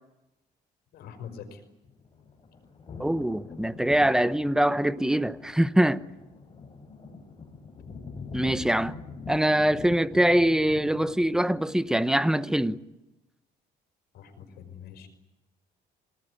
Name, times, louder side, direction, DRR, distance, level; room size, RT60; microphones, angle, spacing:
voice 1, 0.9-1.6 7.9-8.0 14.1-15.1, left 7 dB, 70° left, 5.5 m, -44 dB
sound 1, 1.8-12.3, left 4 dB, 30° left, 5.6 m, -44 dB
voice 2, 3.0-6.0 8.3-8.9 9.3-12.8, right 1 dB, 5° right, 0.9 m, -23 dB
27.5 x 19.0 x 10.0 m
cardioid pair, 110°, 17 cm